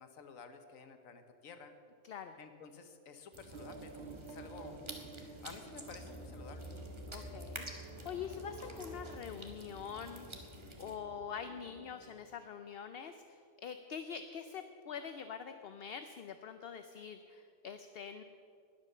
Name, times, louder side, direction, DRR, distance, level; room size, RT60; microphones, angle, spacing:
voice 1, 0.0-1.7 2.4-4.8 5.4-6.7, left 5 dB, 90° left, 8 dB, 1.4 m, -52 dB
voice 2, 2.0-2.3 7.1-10.3 10.8-18.2, left 7 dB, 55° left, 9 dB, 0.7 m, -45 dB
sound 1, 3.3-11.0, right 1 dB, 20° right, 1.4 m, -50 dB
sound 2, 3.5-8.9, right 4 dB, 55° right, 1.6 m, -52 dB
sound 3, 5.9-12.1, equal, 20° left, 1.7 m, -51 dB
20.0 x 8.3 x 6.6 m, 2.4 s
omnidirectional pair, 1.4 m